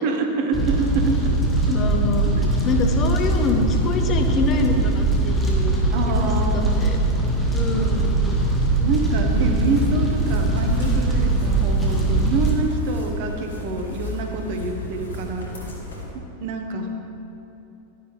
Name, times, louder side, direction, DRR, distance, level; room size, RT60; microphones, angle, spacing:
voice 1, 0.0-1.3 2.4-2.5 5.9-6.9 8.8-15.5 16.1-16.9, right 3 dB, 45° right, 4 dB, 1.1 m, -26 dB
Fire, 0.5-12.5, right 2 dB, 10° left, 1.9 m, -21 dB
voice 2, 1.7-2.3 2.6-6.3 6.5-7.0 7.5-8.4, left 3 dB, 30° left, 4 dB, 1.0 m, -26 dB
sound 1, 9.3-16.0, left 2 dB, 65° left, 2.2 m, -34 dB
12.5 x 10.0 x 3.3 m, 2.9 s
figure-of-eight pair, 90°, 0 cm